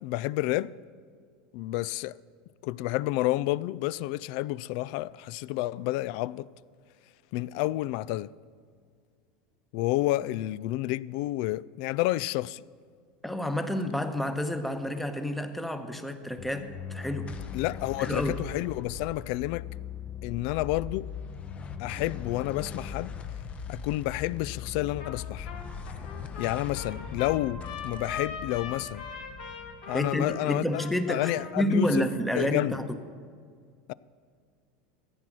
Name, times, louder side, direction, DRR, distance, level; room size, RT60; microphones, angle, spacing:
voice 1, 0.0-0.7 1.5-2.2 2.6-6.5 7.3-8.3 9.7-12.6 17.5-19.7 20.2-21.1 21.8-23.1 23.7-25.5 26.4-29.0 29.9-30.8 31.1-32.1 32.3-32.8 33.9-34.0, left 17 dB, 65° left, 0.3 m, -30 dB
voice 2, 13.2-17.3 18.0-18.4 29.9-32.9, left 1 dB, 5° left, 1.0 m, -29 dB
sound 1, 16.4-31.0, left 7 dB, 25° left, 0.8 m, -40 dB
Trumpet, 25.0-25.2 25.4-31.7, left 6 dB, 85° left, 2.2 m, -40 dB
15.0 x 9.0 x 6.2 m
supercardioid pair, 125°, 4 cm